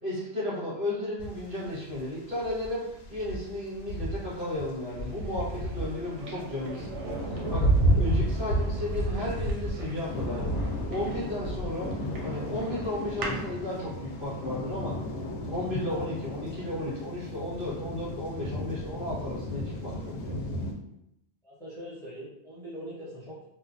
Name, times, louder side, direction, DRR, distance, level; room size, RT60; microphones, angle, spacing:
voice 1, 0.0-2.8 3.1-7.7 7.9-10.6 10.9-11.9 12.2-14.9 15.5-20.4, left 1 dB, 50° right, -9 dB, 1.4 m, -34 dB
sound 1, 1.2-2.0 2.3-4.7 5.0-20.7, equal, 75° left, 0.9 m, -31 dB
sound 2, 4.9-13.5, right 3 dB, 80° right, 0.9 m, -42 dB
voice 2, 21.4-23.4, equal, 5° left, -10 dB, 0.9 m, -42 dB
3.0 x 2.1 x 2.5 m, 0.79 s
omnidirectional pair, 1.2 m